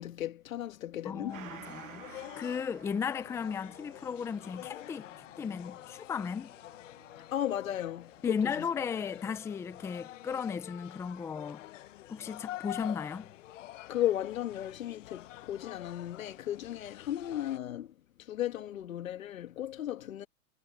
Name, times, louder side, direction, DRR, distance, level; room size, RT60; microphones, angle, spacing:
voice 1, 0.0-1.5 7.2-8.7 13.9-20.3, left 12 dB, 85° left, 1.6 m, -35 dB
voice 2, 1.0-6.5 8.2-11.7 12.1-13.3, left 6 dB, 5° left, 0.6 m, -35 dB
sound 1, 1.3-17.6, left 15 dB, 65° left, 1.3 m, -48 dB
Gong, 1.3-10.3 10.6-10.7, right 10 dB, 90° right, 1.8 m, -55 dB
hypercardioid pair, 145°, 40 cm